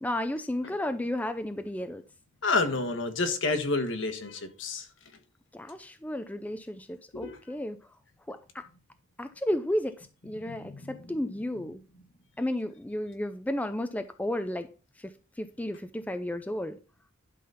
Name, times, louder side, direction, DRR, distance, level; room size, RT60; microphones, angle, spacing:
voice 1, 0.0-2.0 5.5-7.8 8.3-8.7 9.2-11.8 12.4-14.7 15.0-16.8, left 1 dB, 10° left, 0.4 m, -33 dB
voice 2, 2.4-4.9 7.1-7.4 10.4-11.2, left 3 dB, 65° left, 1.4 m, -30 dB
11.5 x 3.9 x 5.6 m
head